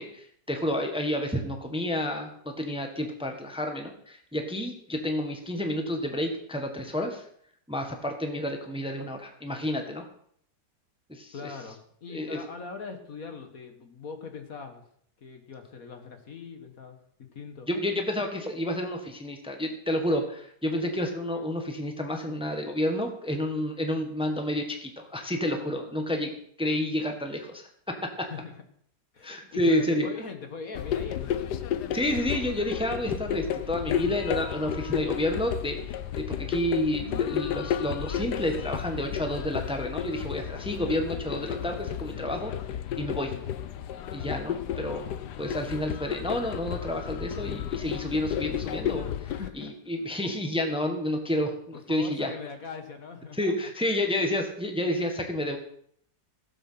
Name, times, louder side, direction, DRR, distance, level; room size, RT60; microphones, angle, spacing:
voice 1, 0.0-7.2 7.7-10.1 11.1-11.5 12.1-12.4 17.7-26.3 26.6-28.3 29.2-30.1 31.9-42.5 43.0-43.3 44.1-49.3 49.5-52.3 53.3-55.6, left 1 dB, 5° right, 4 dB, 1.4 m, -30 dB
voice 2, 11.3-14.8 15.2-17.0 17.3-17.7 28.3-28.6 29.1-31.5 49.2-49.7 51.7-53.7, left 5 dB, 55° left, 6 dB, 1.8 m, -41 dB
sound 1, 30.7-49.5, left 10 dB, 75° left, 1.4 m, -32 dB
16.5 x 7.7 x 5.8 m, 0.64 s
omnidirectional pair, 1.8 m